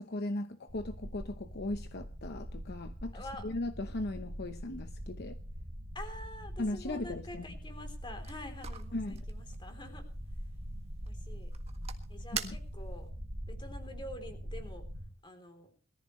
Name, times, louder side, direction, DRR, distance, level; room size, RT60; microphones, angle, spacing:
voice 1, 0.0-5.4 6.6-7.4 8.9-9.2 12.3-12.6, left 2 dB, 55° left, 8 dB, 0.9 m, -38 dB
sound 1, 0.7-15.1, equal, 85° right, 3.0 m, -43 dB
voice 2, 3.1-3.5 5.9-10.0 11.0-11.5 12.1-13.1 13.5-14.9 15.2-15.7, left 1 dB, 25° left, 6 dB, 3.4 m, -47 dB
sound 2, 7.9-13.1, right 7 dB, 30° right, 1.6 m, -46 dB
21.5 x 14.5 x 3.2 m, 0.40 s
head